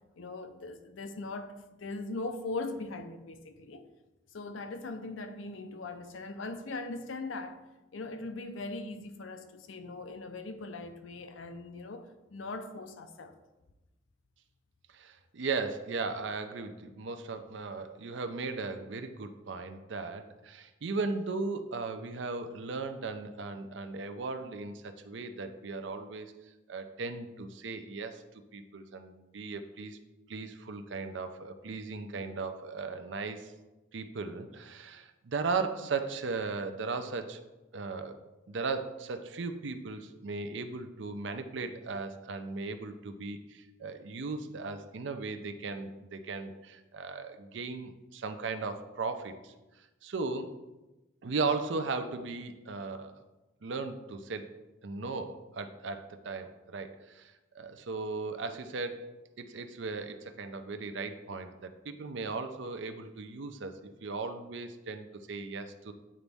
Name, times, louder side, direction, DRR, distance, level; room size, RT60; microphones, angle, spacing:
voice 1, 0.2-3.8 4.3-7.6 7.9-13.3, left 3 dB, 80° left, 0.6 m, -40 dB
voice 2, 14.9-26.3 26.7-28.2 28.5-30.0 30.3-33.5 33.9-37.4 37.7-38.2 38.5-50.5 51.2-53.2 53.6-54.5 54.8-59.1 59.4-63.7 64.0-65.9, right 4 dB, 65° right, 0.5 m, -37 dB
8.6 x 4.0 x 3.4 m
head